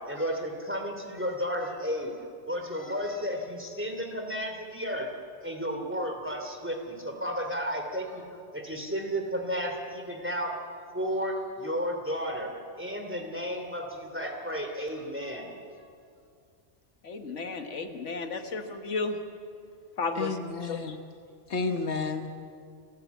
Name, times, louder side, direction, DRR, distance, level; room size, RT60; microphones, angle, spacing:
voice 1, 0.1-2.2 2.4-5.1 5.4-8.2 8.5-10.6 10.9-12.5 12.8-15.5 15.8-15.9, equal, 10° right, 3 dB, 2.9 m, -33 dB
voice 2, 17.0-19.2 20.0-20.8, left 4 dB, 90° left, 7 dB, 1.7 m, -33 dB
voice 3, 20.2-21.0 21.5-22.3, left 4 dB, 70° left, 6 dB, 1.5 m, -31 dB
28.5 x 14.0 x 8.2 m, 2.3 s
omnidirectional pair, 1.2 m